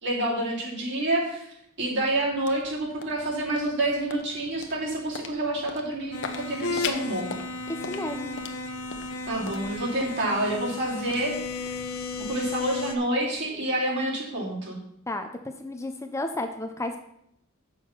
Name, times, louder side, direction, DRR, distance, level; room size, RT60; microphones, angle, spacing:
voice 1, 0.0-1.5 1.8-6.2 6.4-7.3 9.3-11.4 12.3-14.8, right 1 dB, 55° right, -5 dB, 3.1 m, -28 dB
sound 1, 1.5-13.9, left 5 dB, 60° left, 0.9 m, -43 dB
sound 2, 6.1-13.0, left 3 dB, 85° left, 0.9 m, -34 dB
voice 2, 7.7-8.4 15.1-15.3 15.6-17.0, left 1 dB, 15° left, 6 dB, 0.6 m, -32 dB
7.6 x 6.3 x 5.9 m, 0.75 s
head